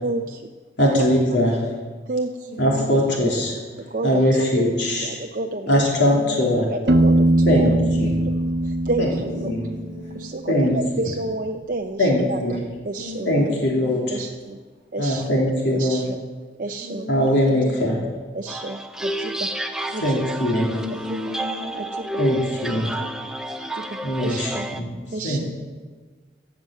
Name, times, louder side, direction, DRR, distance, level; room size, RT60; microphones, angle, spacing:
voice 1, 0.0-0.5 0.9-1.1 2.1-2.6 3.9-4.7 5.0-5.8 6.7-7.8 8.3-8.4 8.6-9.5 10.1-12.6 12.9-13.3 14.1-14.6 14.9-15.2 15.7-16.2 16.6-17.1 18.3-19.5 19.9-20.0 21.1-21.2 21.7-22.1 22.7-23.1 23.7-24.7 25.1-25.4, right 2 dB, 45° right, 4 dB, 0.6 m, -30 dB
voice 2, 0.8-1.6 2.6-3.5 4.0-5.2 5.7-6.7 7.5-7.7 8.0-8.1 9.0-9.1 9.4-9.7 10.5-10.7 11.0-11.1 12.0-12.6 13.2-14.2 15.0-16.0 17.1-18.0 20.0-20.7 22.2-22.9 24.0-24.5 24.8-25.4, left 1 dB, 70° left, -2 dB, 3.2 m, -21 dB
voice 3, 6.0-6.6 9.3-10.5 12.9-13.8 16.8-17.5 20.6-22.2 25.3-25.4, left 2 dB, 35° left, -9 dB, 4.7 m, -36 dB
Piano, 6.9-10.6, right 1 dB, 65° right, 0.9 m, -21 dB
sound 1, 18.5-24.8, right 1 dB, 5° right, 0.7 m, -30 dB
17.0 x 7.8 x 7.5 m, 1.4 s
head